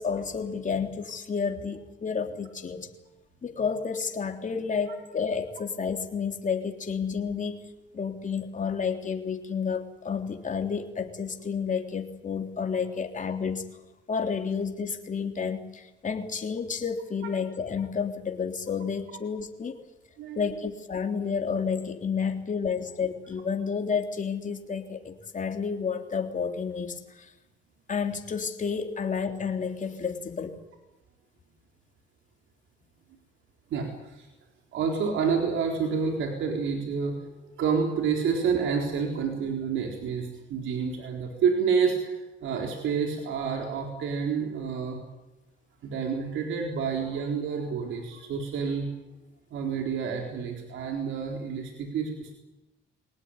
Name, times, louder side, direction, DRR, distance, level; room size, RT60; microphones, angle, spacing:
voice 1, 0.0-2.9 3.4-7.6 7.9-13.7 14.1-19.8 20.4-27.3 27.9-30.6, left 6 dB, 40° left, 4 dB, 3.6 m, -30 dB
voice 2, 33.7-34.3 34.7-37.3 37.6-45.0 45.8-48.9 49.5-52.3, right 6 dB, 80° right, 2 dB, 4.1 m, -29 dB
24.0 x 19.0 x 10.0 m, 1.0 s
cardioid pair, 90°, 20 cm